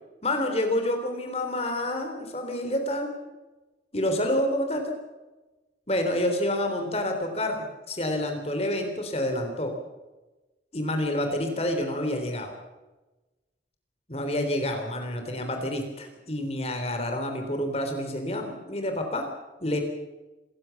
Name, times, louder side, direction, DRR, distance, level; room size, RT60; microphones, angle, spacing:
voice 1, 0.2-3.1 3.9-5.0 5.9-9.8 10.7-12.6 14.1-19.3 19.6-19.8, left 1 dB, 35° left, 5 dB, 3.7 m, -28 dB
27.0 x 15.5 x 7.2 m, 1.1 s
head